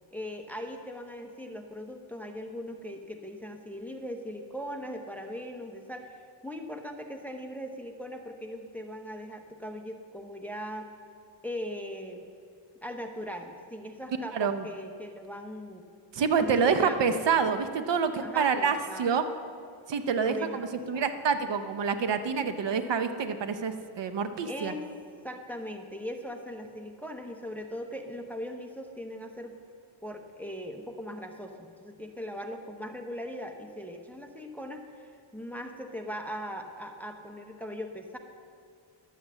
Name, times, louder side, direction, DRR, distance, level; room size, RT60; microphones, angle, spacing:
voice 1, 0.1-6.2 6.4-10.9 11.4-12.3 12.8-15.8 16.4-17.2 18.2-19.2 20.2-20.6 20.9-21.1 24.4-24.9 25.2-29.6 30.0-38.2, equal, 5° left, 4 dB, 0.7 m, -39 dB
voice 2, 14.3-14.7 16.1-19.3 19.9-24.7, right 6 dB, 60° right, 9 dB, 0.7 m, -27 dB
11.0 x 8.0 x 7.3 m, 2.3 s
wide cardioid pair, 160°, 50 cm